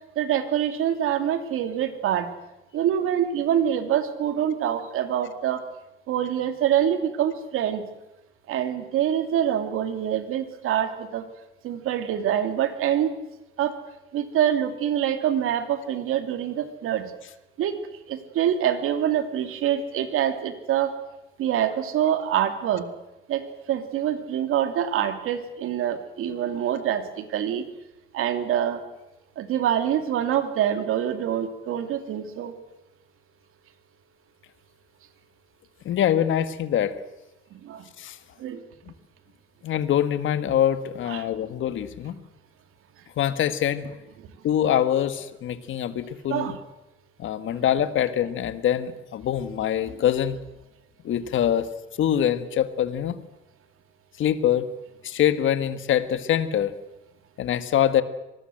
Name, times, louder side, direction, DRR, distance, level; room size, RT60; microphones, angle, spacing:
voice 1, 0.2-2.3 2.7-5.6 6.1-7.8 8.5-11.2 11.6-13.1 13.6-13.7 14.1-17.1 17.6-17.8 18.1-20.9 21.4-22.9 23.3-27.6 28.1-28.8 29.4-32.5 37.7-37.8 38.4-38.6 41.0-41.2 46.3-46.6, right 10 dB, 90° right, 9 dB, 2.8 m, -25 dB
voice 2, 35.8-36.9 38.0-38.2 39.6-42.1 43.2-43.9 44.4-46.5 47.2-50.4 51.0-51.7 52.0-53.1 54.2-54.7 55.0-56.7 57.4-58.0, left 10 dB, 65° left, 12 dB, 1.7 m, -24 dB
25.5 x 19.5 x 7.8 m, 0.98 s
cardioid pair, 140°, 21 cm